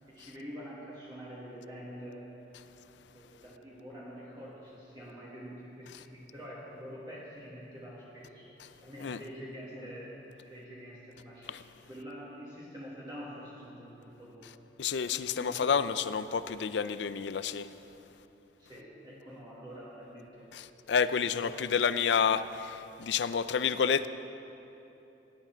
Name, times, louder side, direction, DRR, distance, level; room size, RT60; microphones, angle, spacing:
voice 1, 0.1-2.3 3.1-8.5 8.8-14.5 15.3-15.9 16.4-16.5 18.6-20.5 21.2-21.7 22.1-22.3, equal, 25° right, -7 dB, 1.7 m, -46 dB
voice 2, 14.8-17.7 20.5-24.1, left 6 dB, 75° left, 13 dB, 0.5 m, -29 dB
17.5 x 11.5 x 4.5 m, 3.0 s
head